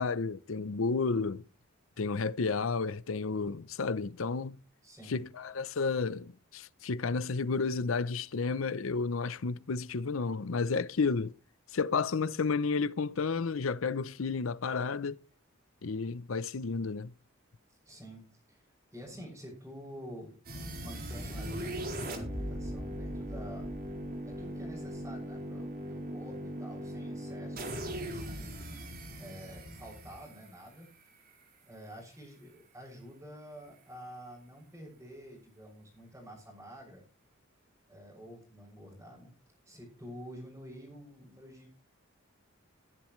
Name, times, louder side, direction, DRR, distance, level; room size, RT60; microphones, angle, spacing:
voice 1, 0.0-1.4 2.0-4.6 5.1-11.3 11.7-15.2 15.8-17.1, left 4 dB, 70° left, 0.6 m, -31 dB
voice 2, 4.8-5.2 17.7-18.6 18.9-20.3 20.8-23.7 24.2-28.6 29.2-30.9 31.6-37.0 37.9-39.3 39.6-41.8, equal, 10° right, 6.7 m, -49 dB
sound 1, 20.4-31.4, equal, 50° right, 4.5 m, -39 dB
21.5 x 10.5 x 3.2 m
head